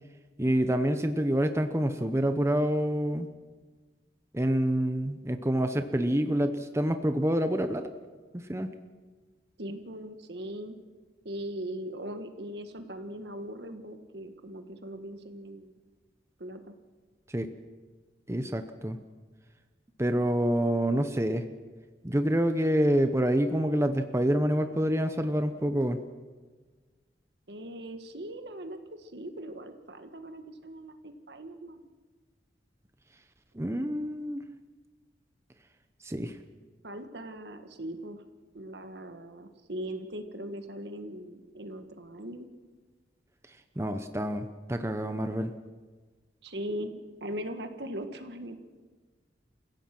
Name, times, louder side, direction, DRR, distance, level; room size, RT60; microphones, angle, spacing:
voice 1, 0.4-3.3 4.3-7.9 8.5-8.7 17.3-17.5 18.3-19.0 20.0-21.5 22.0-26.0 33.5-34.4 36.0-36.3 43.8-45.5, equal, 15° right, 8 dB, 0.8 m, -27 dB
voice 2, 9.6-10.8 11.3-15.8 16.4-16.8 27.5-31.9 36.8-38.2 38.5-42.5 46.4-48.6, right 1 dB, 70° right, 7 dB, 1.7 m, -40 dB
28.5 x 16.0 x 6.1 m, 1.4 s
head